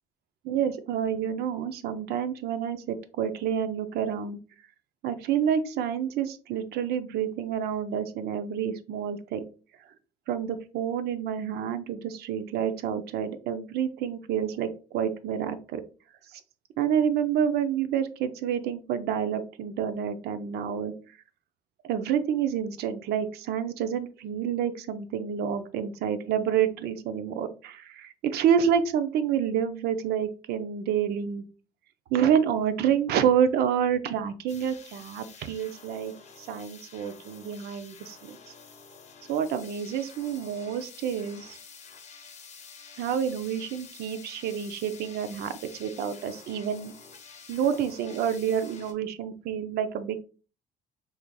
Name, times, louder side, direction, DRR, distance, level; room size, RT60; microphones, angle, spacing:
voice 1, 0.4-4.4 5.0-9.4 10.3-14.7 14.9-15.8 16.8-20.9 21.8-31.4 32.1-36.1 36.4-38.4 39.3-41.6 43.0-46.9 47.5-50.2, right 8 dB, 70° right, 10 dB, 0.5 m, -28 dB
sound 1, 34.5-48.9, left 5 dB, 40° left, 0.7 m, -49 dB
3.8 x 3.1 x 2.2 m, 0.36 s
cardioid pair, 110°, 17 cm